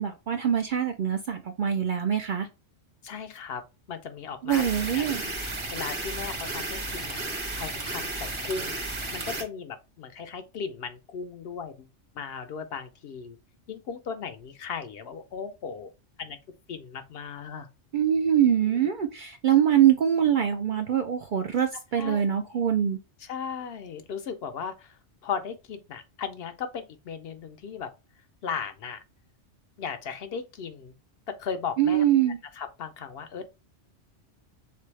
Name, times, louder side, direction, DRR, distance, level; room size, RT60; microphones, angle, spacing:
voice 1, 0.0-2.5 4.4-5.2 17.9-23.0 31.8-32.4, right 9 dB, 60° right, 0.5 m, -24 dB
voice 2, 3.0-3.6 3.9-4.6 4.9-5.3 5.7-7.2 7.6-8.8 9.1-11.9 12.1-13.4 13.7-15.9 16.2-16.4 16.7-17.7 21.9-22.3 23.2-27.9 28.4-29.0 29.8-31.0 31.3-32.0 32.5-33.4, left 6 dB, 65° left, 0.7 m, -36 dB
sound 1, 4.5-9.4, right 2 dB, 30° right, 0.8 m, -33 dB
3.7 x 3.4 x 3.2 m
omnidirectional pair, 1.2 m